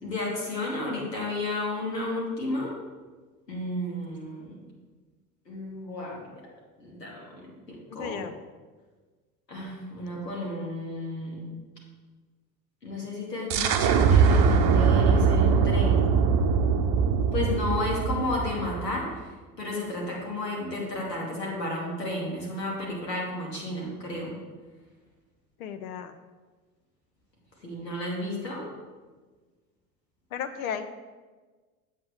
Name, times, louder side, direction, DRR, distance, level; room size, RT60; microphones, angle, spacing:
voice 1, 0.0-2.7 3.5-4.6 5.5-6.4 6.8-8.3 9.5-11.6 12.8-16.2 17.3-19.1 19.6-24.4 27.6-28.7, left 1 dB, 80° left, -3 dB, 2.4 m, -32 dB
voice 2, 7.9-8.4 25.6-26.2 30.3-30.9, left 8 dB, 60° left, 9 dB, 0.7 m, -34 dB
sound 1, 13.5-19.0, right 6 dB, 40° right, 0.8 m, -22 dB
8.6 x 7.4 x 3.5 m, 1.4 s
figure-of-eight pair, 75°, 48 cm